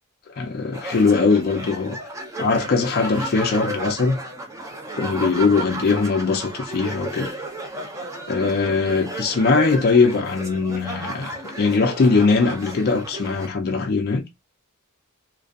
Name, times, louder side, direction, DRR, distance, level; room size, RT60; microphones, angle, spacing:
voice 1, 0.3-2.0 2.4-4.2 4.9-7.3 8.3-14.2, left 4 dB, 45° left, 0.4 m, -20 dB
sound 1, 0.7-13.5, right 1 dB, 15° right, 0.5 m, -33 dB
2.5 x 2.4 x 2.3 m
head